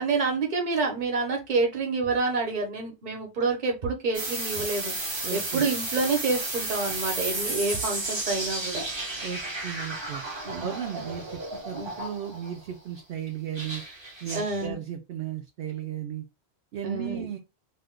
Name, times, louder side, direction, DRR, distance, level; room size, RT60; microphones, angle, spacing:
voice 1, 0.0-8.8 10.4-10.7 11.7-11.9 14.3-14.8 16.8-17.3, right 4 dB, 45° right, 2 dB, 1.0 m, -28 dB
sound 1, 4.1-12.6 13.5-14.7, right 2 dB, 25° right, 0.7 m, -33 dB
voice 2, 5.2-5.6 9.2-10.2 10.6-11.4 11.6-13.8 14.2-16.2 16.7-17.4, right 9 dB, 65° right, 3 dB, 0.8 m, -35 dB
2.6 x 2.3 x 3.6 m, 0.25 s
omnidirectional pair, 1.2 m